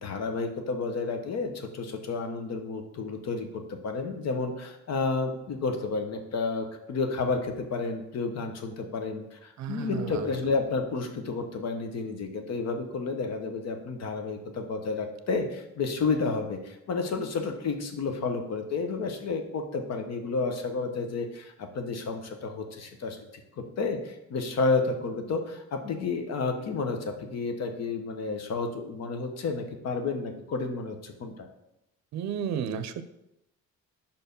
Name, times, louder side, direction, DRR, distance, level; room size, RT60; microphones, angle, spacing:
voice 1, 0.0-31.5, left 4 dB, 60° left, 6 dB, 1.0 m, -31 dB
voice 2, 9.6-10.4 32.1-33.0, right 8 dB, 65° right, 11 dB, 0.6 m, -33 dB
5.4 x 4.6 x 5.3 m, 0.85 s
cardioid pair, 145°, 30 cm